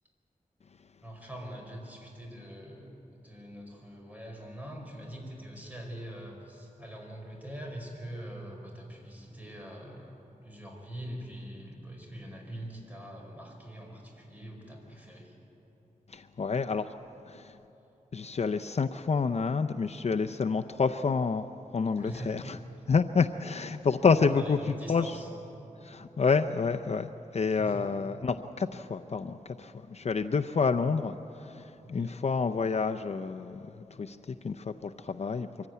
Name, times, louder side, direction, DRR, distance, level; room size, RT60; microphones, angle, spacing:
voice 1, 1.0-3.0 3.2-10.1 10.4-15.3 21.9-22.4 24.2-25.3 27.5-27.9 31.8-32.2, equal, 10° right, 0 dB, 4.8 m, -43 dB
voice 2, 16.1-16.9 17.2-17.6 18.1-22.6 22.9-24.6 24.9-25.1 25.8-35.7, left 5 dB, 50° left, 7 dB, 0.5 m, -29 dB
24.0 x 15.5 x 9.3 m, 3.0 s
wide cardioid pair, 110°, 14 cm